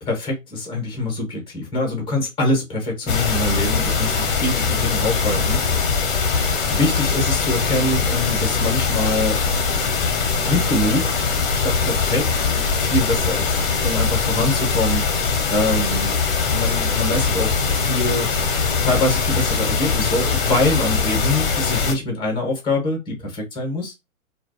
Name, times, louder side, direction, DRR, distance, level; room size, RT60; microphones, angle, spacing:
voice 1, 0.1-5.6 6.7-9.4 10.4-11.2 11.5-12.3 12.7-15.1 15.5-16.1 16.5-18.3 18.8-23.9, left 2 dB, 10° left, 0.8 m, -24 dB
sound 1, 3.1-21.9, left 5 dB, 40° left, 0.8 m, -21 dB
2.3 x 2.2 x 2.6 m
hypercardioid pair, 125°, 42 cm